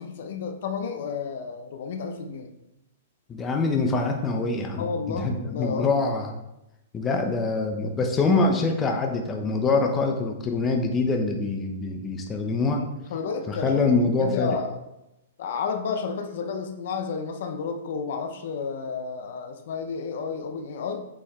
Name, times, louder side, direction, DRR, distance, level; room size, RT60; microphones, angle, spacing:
voice 1, 0.0-2.5 4.8-5.9 12.8-14.8 15.4-21.0, left 5 dB, 65° left, 5 dB, 0.9 m, -31 dB
voice 2, 3.3-6.3 6.9-12.8 13.5-14.5, left 3 dB, 20° left, 3 dB, 0.9 m, -24 dB
8.3 x 5.1 x 3.7 m, 0.90 s
hypercardioid pair, 140°, 0 cm